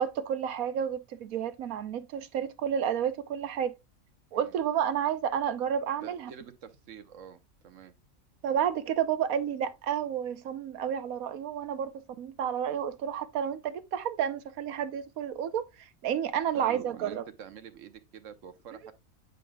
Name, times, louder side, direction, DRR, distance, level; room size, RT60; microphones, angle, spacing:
voice 1, 0.0-3.7 4.3-6.3 8.4-17.2, right 8 dB, 90° right, 1.3 m, -31 dB
voice 2, 6.0-7.9 16.5-18.9, right 8 dB, 65° right, 1.2 m, -47 dB
9.2 x 5.1 x 2.3 m
omnidirectional pair, 1.4 m